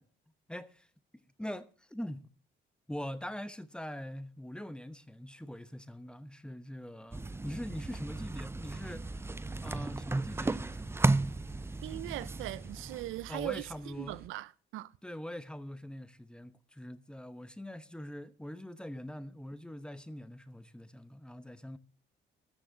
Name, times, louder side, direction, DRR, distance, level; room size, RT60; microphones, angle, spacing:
voice 1, 0.5-0.9 1.1-2.3 2.9-9.3 9.6-11.1 13.3-14.2 15.0-21.8, left 1 dB, 5° left, 1.0 m, -43 dB
sound 1, 7.1-13.6, right 2 dB, 10° right, 0.5 m, -34 dB
sound 2, 8.6-14.3, right 8 dB, 50° right, 0.8 m, -56 dB
voice 2, 11.8-13.6 14.0-14.9, right 17 dB, 85° right, 0.5 m, -39 dB
14.0 x 6.5 x 6.6 m
cardioid pair, 90°, 20 cm